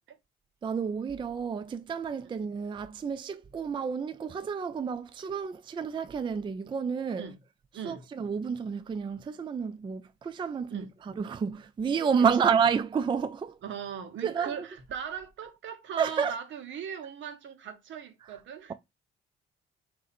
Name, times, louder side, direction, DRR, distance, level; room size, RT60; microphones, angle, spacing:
voice 1, 0.6-7.3 7.8-13.6 14.2-14.6 16.0-16.4 18.2-18.3, right 6 dB, 25° right, 0.3 m, -30 dB
voice 2, 7.7-8.1 10.7-10.9 12.2-12.3 13.6-18.7, right 7 dB, 70° right, 1.0 m, -39 dB
4.0 x 2.7 x 4.1 m
cardioid pair, 90°, 20 cm